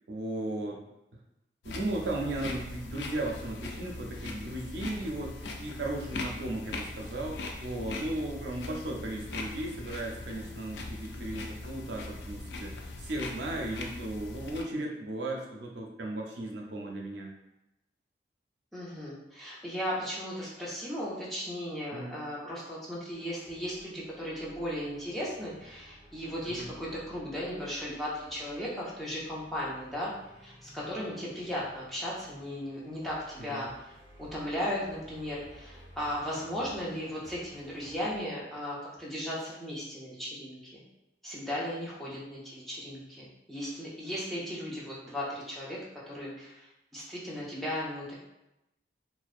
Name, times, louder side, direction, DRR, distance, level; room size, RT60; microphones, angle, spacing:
voice 1, 0.1-0.9 1.6-17.3 21.9-22.2 26.5-26.7 33.5-33.7, right 1 dB, 80° right, 0 dB, 0.4 m, -36 dB
sound 1, 1.6-14.6, left 2 dB, 80° left, 0.3 m, -40 dB
voice 2, 18.7-30.1 30.4-33.9 34.2-40.8 41.2-45.8 46.1-48.1, equal, ahead, -7 dB, 0.4 m, -36 dB
sound 2, 23.1-38.3, equal, 35° left, 1.1 m, -55 dB
2.5 x 2.1 x 2.3 m, 0.91 s
head